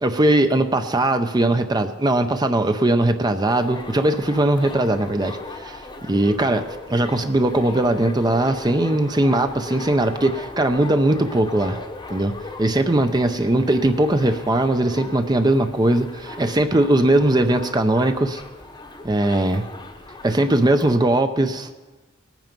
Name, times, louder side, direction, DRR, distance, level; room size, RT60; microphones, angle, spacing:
voice 1, 0.0-11.8 12.1-12.3 12.6-18.4 19.0-19.6 20.2-21.7, right 1 dB, 20° right, 8 dB, 0.6 m, -20 dB
sound 1, 3.5-21.0, left 2 dB, 20° left, 0.9 m, -38 dB
19.0 x 9.1 x 5.3 m, 1.2 s
head